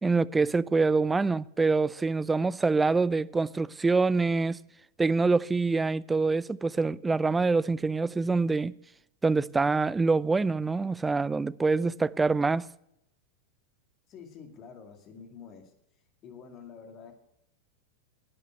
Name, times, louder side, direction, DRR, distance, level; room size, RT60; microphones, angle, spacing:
voice 1, 0.0-4.6 5.0-8.7 9.2-12.7, right 3 dB, 10° right, 0.3 m, -25 dB
voice 2, 14.1-15.7 16.2-17.1, left 6 dB, 35° left, 2.2 m, -47 dB
11.0 x 9.2 x 6.6 m
figure-of-eight pair, 90°, 0 cm